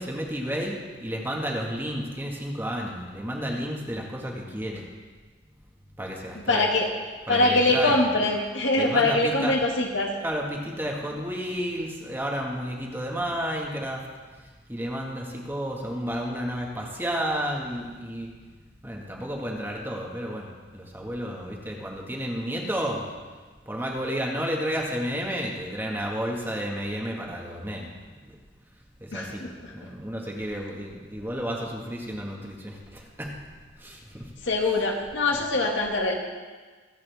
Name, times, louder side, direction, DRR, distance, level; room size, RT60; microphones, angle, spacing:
voice 1, 0.0-4.9 6.0-6.7 7.3-8.1 8.7-9.6 10.2-14.0 14.4-18.3 18.8-23.0 23.6-27.9 28.2-28.4 29.0-33.3 33.8-34.3 34.7-34.8 35.3-35.4, equal, 10° right, -1 dB, 1.7 m, -32 dB
voice 2, 6.5-6.9 7.3-10.1 29.1-29.7 34.4-36.1, left 2 dB, 75° left, 0 dB, 2.0 m, -23 dB
24.0 x 8.5 x 3.5 m, 1.4 s
head